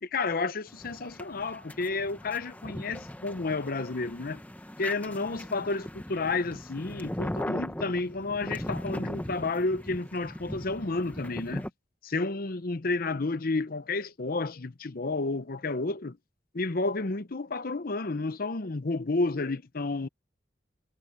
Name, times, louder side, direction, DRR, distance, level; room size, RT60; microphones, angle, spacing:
voice 1, 0.0-4.4 4.8-11.6 12.0-16.2 16.5-20.1, left 3 dB, 50° left, 0.8 m, -31 dB
sound 1, 0.7-11.7, equal, 10° left, 1.1 m, -39 dB
head